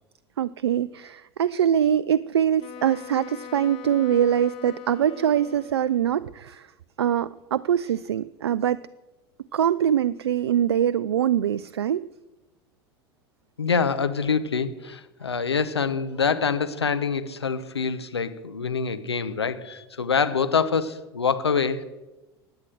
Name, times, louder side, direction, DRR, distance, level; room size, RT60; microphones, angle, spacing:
voice 1, 0.4-6.7 7.0-8.8 9.5-12.0, right 9 dB, 80° right, 16 dB, 0.4 m, -23 dB
Wind instrument woodwind instrument, 2.6-6.2, left 10 dB, 45° left, 1.1 m, -41 dB
voice 2, 13.6-21.8, left 5 dB, 90° left, 11 dB, 0.8 m, -25 dB
15.5 x 9.5 x 7.7 m, 1.1 s
hypercardioid pair, 80°, 13 cm